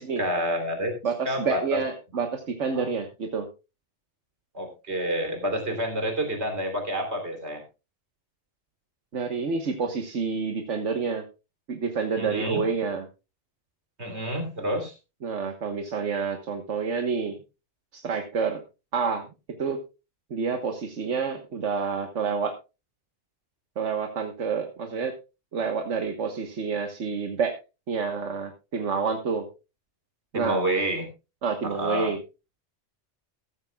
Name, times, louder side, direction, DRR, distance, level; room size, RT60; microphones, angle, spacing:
voice 1, 0.0-0.9 1.3-1.8 2.7-2.9 4.5-7.6 12.2-12.6 14.0-14.9 30.3-31.1 31.6-32.1, equal, 70° right, 5 dB, 3.7 m, -29 dB
voice 2, 1.0-3.5 9.1-11.2 11.7-13.0 15.2-17.4 17.9-18.6 18.9-19.3 19.6-19.8 20.3-22.5 23.8-25.1 25.5-27.5 27.9-29.5 30.3-30.6 31.4-32.2, right 5 dB, 90° right, 4 dB, 1.6 m, -28 dB
14.5 x 14.0 x 2.3 m, 0.29 s
omnidirectional pair, 1.2 m